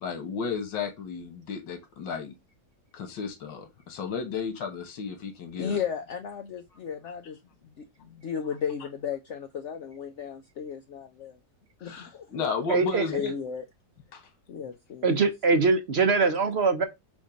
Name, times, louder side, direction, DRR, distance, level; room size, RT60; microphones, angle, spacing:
voice 1, 0.0-2.3 2.9-5.8 11.8-13.3 14.1-14.2, left 5 dB, 90° left, 1.9 m, -33 dB
voice 2, 5.6-7.4 7.6-11.4 11.8-12.5 13.1-13.6 14.5-15.3, left 7 dB, 70° left, 0.6 m, -35 dB
voice 3, 12.7-13.0 15.0-16.8, right 4 dB, 55° right, 0.7 m, -22 dB
7.2 x 2.6 x 5.1 m
omnidirectional pair, 1.9 m